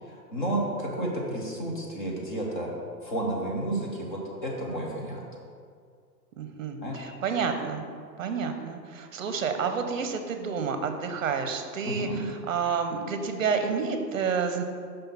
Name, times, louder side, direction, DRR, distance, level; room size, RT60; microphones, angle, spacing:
voice 1, 0.0-2.7 3.0-5.2 6.8-7.0 11.8-12.3, right 1 dB, 30° left, -2 dB, 0.9 m, -31 dB
voice 2, 6.4-7.8 8.2-14.6, right 5 dB, 55° right, 6 dB, 0.7 m, -29 dB
5.4 x 3.7 x 5.7 m, 2.1 s
hypercardioid pair, 180°, 48 cm